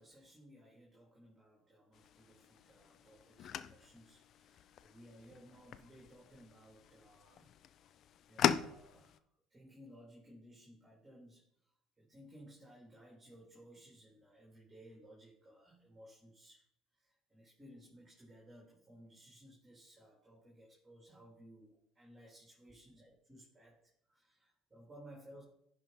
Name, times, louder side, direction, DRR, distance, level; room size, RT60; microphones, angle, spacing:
voice 1, 0.0-7.5 8.3-9.2 9.5-11.7 12.0-16.6 17.0-23.8 24.1-25.4, equal, 20° right, -3 dB, 3.0 m, -59 dB
sound 1, 1.9-9.2, left 9 dB, 55° left, 0.5 m, -40 dB
11.0 x 5.2 x 3.9 m, 0.73 s
supercardioid pair, 80°, 0 cm